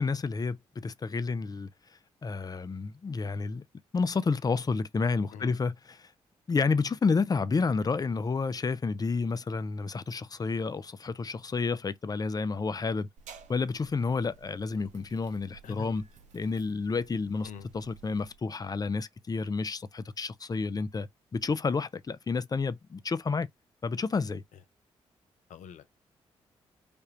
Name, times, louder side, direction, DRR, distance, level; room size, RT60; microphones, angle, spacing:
voice 1, 0.0-1.7 2.2-3.6 3.9-6.1 6.5-13.1 13.5-16.0 16.3-17.5 17.7-23.5 23.8-24.4, left 4 dB, 30° left, 0.5 m, -30 dB
sound 1, 13.2-18.4, right 7 dB, 70° right, 0.7 m, -54 dB
voice 2, 15.6-16.0 17.4-17.7 25.5-26.0, left 7 dB, 75° left, 0.6 m, -44 dB
3.4 x 2.4 x 2.8 m
hypercardioid pair, 45°, 13 cm